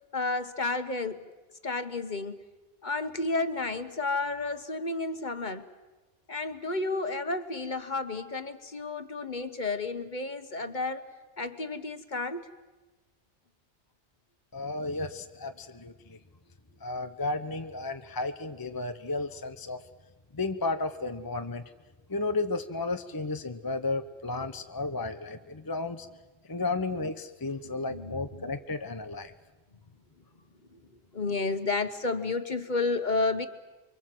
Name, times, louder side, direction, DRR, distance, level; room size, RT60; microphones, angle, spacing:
voice 1, 0.1-1.2 1.6-2.4 2.8-5.7 6.3-11.0 11.4-12.5 27.6-28.5 31.1-33.5, left 3 dB, 40° left, 9 dB, 1.4 m, -31 dB
voice 2, 14.5-16.2 16.8-19.8 20.3-21.6 22.1-26.1 26.5-29.3, left 3 dB, 20° left, 7 dB, 0.9 m, -33 dB
29.5 x 23.5 x 7.8 m, 1.2 s
omnidirectional pair, 1.2 m